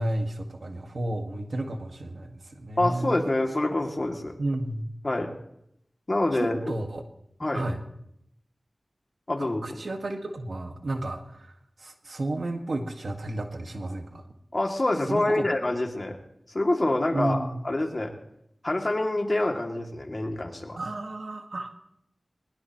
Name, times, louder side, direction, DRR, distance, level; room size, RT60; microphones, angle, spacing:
voice 1, 0.0-3.3 4.4-4.9 6.3-7.0 7.5-7.8 9.4-11.2 11.8-14.2 15.1-15.4 17.1-17.6 20.8-21.7, right 1 dB, 80° right, 4 dB, 1.8 m, -32 dB
voice 2, 2.8-4.3 5.0-5.3 6.1-6.7 7.4-7.7 9.3-9.8 14.5-16.2 16.5-18.1 18.6-20.8, left 2 dB, 40° left, 2 dB, 2.5 m, -26 dB
21.5 x 21.0 x 3.1 m, 0.77 s
wide cardioid pair, 70°, 0 cm